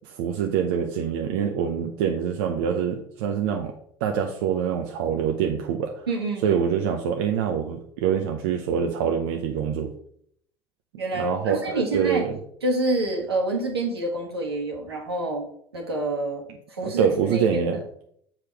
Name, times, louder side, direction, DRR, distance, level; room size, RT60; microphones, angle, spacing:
voice 1, 0.0-3.7 4.0-6.1 6.4-9.9 11.1-12.3 16.8-18.0, right 8 dB, 70° right, 3 dB, 0.8 m, -25 dB
voice 2, 6.1-6.6 11.0-12.3 12.6-15.5 15.7-17.4, right 2 dB, 90° right, -1 dB, 1.7 m, -27 dB
7.3 x 5.0 x 4.7 m, 0.66 s
hypercardioid pair, 65°, 13 cm